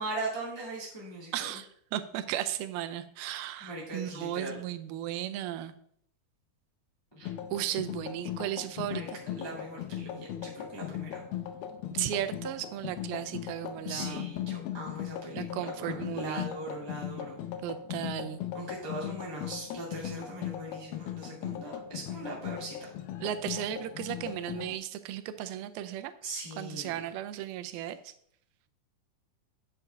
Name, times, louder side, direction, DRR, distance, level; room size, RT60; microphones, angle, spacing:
voice 1, 0.0-1.5 3.6-4.6 7.1-7.3 8.9-9.1 9.3-11.2 13.9-17.4 18.5-22.9 26.2-27.0, right 2 dB, 25° left, -4 dB, 0.6 m, -40 dB
voice 2, 1.3-5.7 7.5-9.2 11.9-14.3 15.3-16.5 17.6-18.4 23.2-26.1 26.6-28.1, right 12 dB, 85° right, 10 dB, 2.5 m, -35 dB
sound 1, 7.2-24.8, left 11 dB, 85° left, 2.6 m, -38 dB
8.6 x 7.5 x 3.4 m, 0.67 s
omnidirectional pair, 4.3 m